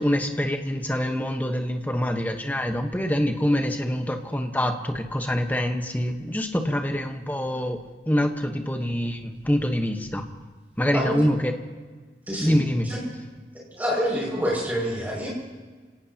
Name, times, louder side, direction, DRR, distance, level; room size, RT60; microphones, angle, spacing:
voice 1, 0.0-10.2 10.8-11.5 12.4-12.9, equal, 10° left, 5 dB, 1.1 m, -25 dB
voice 2, 10.9-11.3 12.3-13.0 13.7-15.3, equal, 10° right, -4 dB, 5.9 m, -27 dB
27.5 x 17.5 x 2.9 m, 1.4 s
head